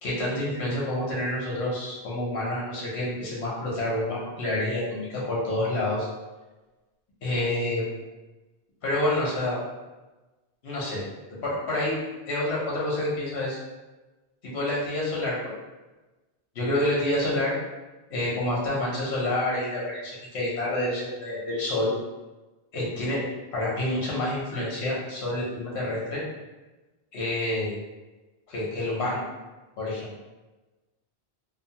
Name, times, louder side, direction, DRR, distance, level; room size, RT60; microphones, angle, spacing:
voice 1, 0.0-6.1 7.2-7.9 8.8-9.6 10.6-11.0 11.3-12.0 12.3-13.6 14.4-15.5 16.5-17.5 18.1-21.9 22.7-23.2 23.5-26.2 27.1-27.7 28.5-29.2 29.8-30.2, left 1 dB, 80° left, -5 dB, 1.1 m, -28 dB
3.0 x 2.0 x 2.8 m, 1.2 s
omnidirectional pair, 1.1 m